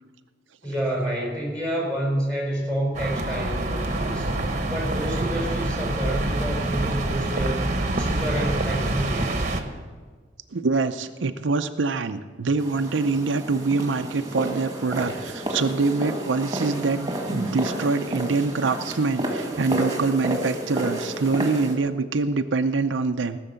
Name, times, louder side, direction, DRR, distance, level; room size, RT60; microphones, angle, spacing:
voice 1, 0.6-7.7 8.0-9.4, equal, 5° left, -3 dB, 4.7 m, -29 dB
sound 1, 2.9-9.6, right 2 dB, 40° right, 1.2 m, -26 dB
voice 2, 10.5-23.4, right 3 dB, 80° right, 8 dB, 0.6 m, -25 dB
sound 2, 12.6-21.8, right 1 dB, 20° right, 2.0 m, -31 dB
18.0 x 6.7 x 8.1 m, 1.5 s
head